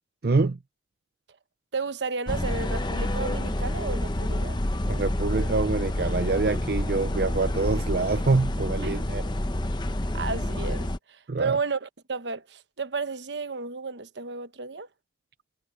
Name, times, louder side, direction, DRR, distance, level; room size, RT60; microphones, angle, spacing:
voice 1, 0.2-0.6 4.9-9.3 11.3-11.6, right 3 dB, 60° right, 0.5 m, -26 dB
voice 2, 1.7-4.6 8.8-8.9 10.1-14.9, right 4 dB, 75° right, 1.0 m, -32 dB
sound 1, 2.3-11.0, left 1 dB, 25° left, 0.9 m, -28 dB
head